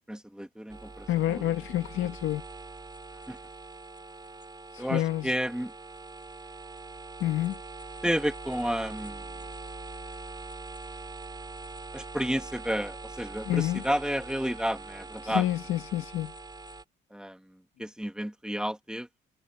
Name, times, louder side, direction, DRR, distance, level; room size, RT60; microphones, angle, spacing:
voice 1, 0.1-1.5 2.0-2.1 3.3-3.4 4.8-5.7 8.0-9.3 11.9-15.5 17.1-19.1, equal, 5° right, 2.2 m, -31 dB
sound 1, 0.7-16.8, right 3 dB, 20° right, 4.0 m, -43 dB
voice 2, 1.1-2.4 4.7-5.3 7.2-7.6 13.4-13.8 15.2-16.3, left 14 dB, 85° left, 1.9 m, -28 dB
cardioid pair, 90°, 20 cm